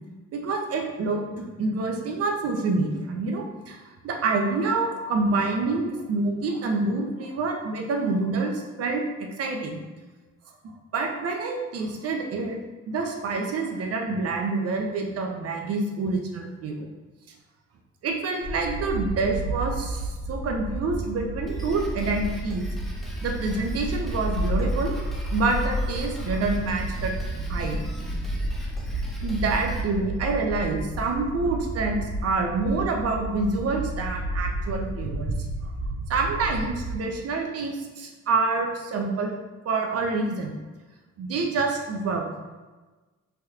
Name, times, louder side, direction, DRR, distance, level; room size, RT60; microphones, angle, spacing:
voice 1, 0.3-9.0 9.4-9.8 10.9-12.6 12.9-16.9 18.0-22.6 23.2-24.9 25.3-27.1 27.5-27.8 29.2-35.7 36.1-39.4 39.6-40.5 41.2-42.3, right 3 dB, 55° right, 2 dB, 0.6 m, -27 dB
sound 1, 18.4-37.0, right 1 dB, 45° left, 1.1 m, -32 dB
Drum kit, 21.5-29.8, right 1 dB, ahead, 0.6 m, -35 dB
3.3 x 2.9 x 2.4 m, 1.3 s
cardioid pair, 90°, 30 cm